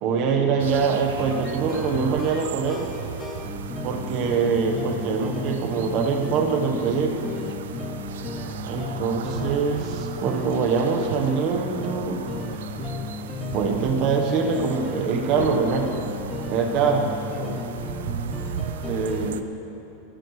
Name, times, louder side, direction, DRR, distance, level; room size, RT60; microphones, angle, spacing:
voice 1, 0.0-2.9 3.8-7.4 8.6-12.2 13.5-15.9 16.5-17.6 18.9-19.5, right 5 dB, 45° right, 3 dB, 1.3 m, -24 dB
sound 1, 0.5-19.3, left 3 dB, 15° left, 0.8 m, -35 dB
sound 2, 0.6-19.4, right 8 dB, 85° right, 0.5 m, -36 dB
19.5 x 9.8 x 3.3 m, 2.9 s
supercardioid pair, 140°, 0 cm